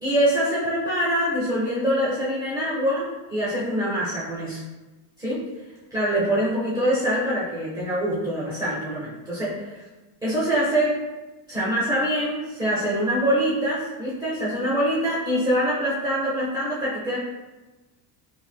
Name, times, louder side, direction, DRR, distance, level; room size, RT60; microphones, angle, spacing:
voice 1, 0.0-4.6 5.2-5.5 5.9-9.8 10.2-11.0 11.5-17.2, equal, 10° right, -8 dB, 0.4 m, -24 dB
2.7 x 2.1 x 3.3 m, 1.1 s
cardioid pair, 150°, 47 cm